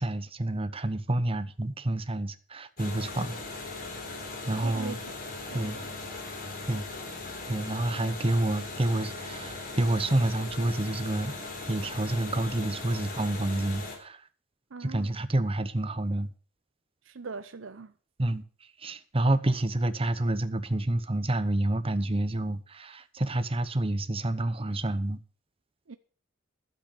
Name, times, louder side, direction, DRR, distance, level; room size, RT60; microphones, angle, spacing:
voice 1, 0.0-3.4 4.5-5.0 5.5-5.8 6.7-6.8 7.5-11.3 11.7-14.2 14.8-16.3 18.2-18.4 18.8-25.2, right 1 dB, 30° right, 0.9 m, -28 dB
sound 1, 2.8-14.0, left 3 dB, 45° left, 3.5 m, -39 dB
voice 2, 4.6-5.0 5.5-5.9 14.7-15.1 17.1-17.9 25.9-26.0, right 4 dB, 70° right, 0.7 m, -41 dB
12.0 x 8.0 x 6.7 m
head